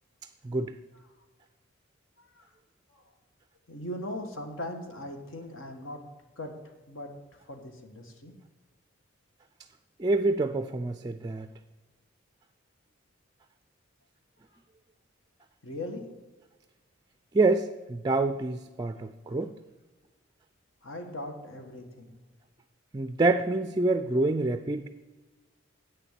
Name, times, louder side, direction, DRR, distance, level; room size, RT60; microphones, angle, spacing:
voice 1, 0.4-0.8 10.0-11.5 17.3-19.5 22.9-24.9, right 2 dB, 20° right, 9 dB, 0.4 m, -27 dB
voice 2, 3.7-6.0 6.4-6.5 6.9-7.1 7.4-8.3 15.6-16.1 20.8-22.2, left 1 dB, 70° left, 4 dB, 1.6 m, -39 dB
8.6 x 7.0 x 7.4 m, 1.2 s
head